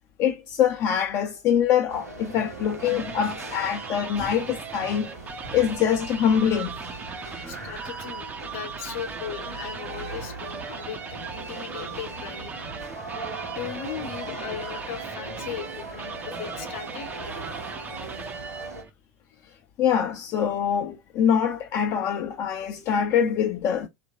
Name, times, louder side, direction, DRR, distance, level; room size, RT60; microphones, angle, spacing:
voice 1, 0.2-5.1 5.5-6.8 19.8-23.9, left 8 dB, 40° left, 0.5 m, -24 dB
sound 1, 1.9-18.8, right 3 dB, 85° right, 0.9 m, -39 dB
sound 2, 2.4-18.9, right 5 dB, 20° right, 0.5 m, -38 dB
voice 2, 7.4-11.0 11.3-12.8 13.5-17.4, left 10 dB, 55° left, 0.8 m, -38 dB
2.8 x 2.5 x 2.8 m
figure-of-eight pair, 80°, 8 cm